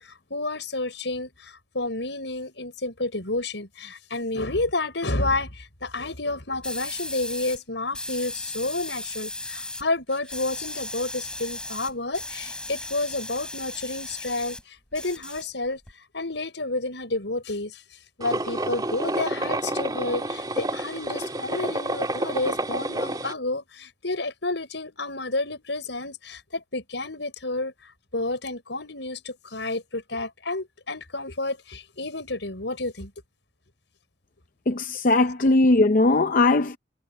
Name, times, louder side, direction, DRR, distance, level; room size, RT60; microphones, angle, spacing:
voice 1, 0.0-15.8 16.1-17.8 18.2-27.7 28.1-33.1, left 2 dB, 75° left, 6.0 m, -30 dB
sound 1, 6.6-7.6 7.9-9.8 10.1-14.6 14.9-15.9, left 2 dB, 5° left, 3.9 m, -36 dB
sound 2, 18.2-23.3, right 1 dB, 20° right, 2.8 m, -29 dB
voice 2, 34.7-36.8, left 2 dB, 45° left, 0.6 m, -19 dB
head